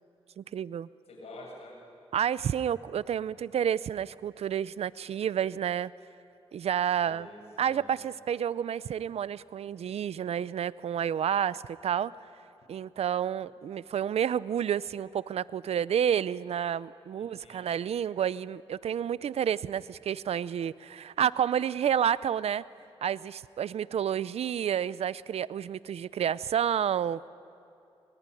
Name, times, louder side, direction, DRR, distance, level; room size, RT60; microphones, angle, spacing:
voice 1, 0.4-0.9 2.1-5.9 6.5-7.3 7.6-12.1 12.7-22.6 23.0-27.3, right 9 dB, 80° right, 18 dB, 0.5 m, -30 dB
voice 2, 1.1-1.8 7.0-8.0 17.1-17.7, left 1 dB, 85° left, 0 dB, 7.7 m, -48 dB
25.5 x 21.5 x 10.0 m, 2.7 s
cardioid pair, 65°, 10 cm